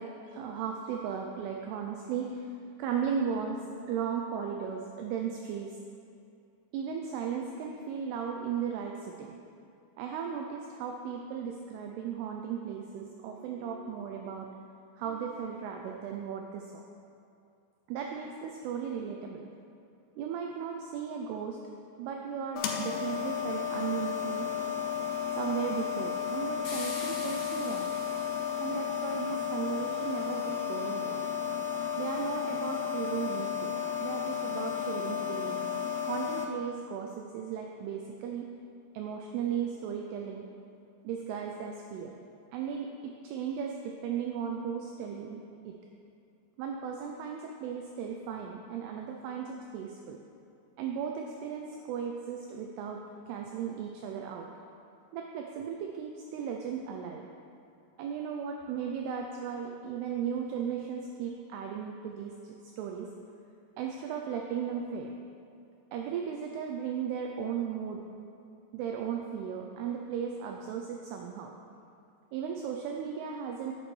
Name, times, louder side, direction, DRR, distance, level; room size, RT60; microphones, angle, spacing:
voice 1, 0.0-2.5 2.8-5.8 6.7-9.4 10.0-14.6 15.0-16.8 17.9-19.4 20.2-21.6 22.0-24.5 25.3-27.9 28.6-31.3 32.0-35.7 36.1-38.5 38.9-40.5 41.0-42.2 42.5-45.7 46.6-50.2 50.8-53.0 53.3-54.5 55.1-57.3 58.0-63.1 63.8-65.1 65.9-68.0 68.7-71.5 72.3-73.7, right 7 dB, 85° right, 2 dB, 2.3 m, -36 dB
sound 1, 22.6-36.5, left 8 dB, 90° left, 2.9 m, -33 dB
sound 2, 26.6-29.0, left 3 dB, 65° left, 3.4 m, -44 dB
9.6 x 8.8 x 3.2 m, 2.6 s
omnidirectional pair, 5.1 m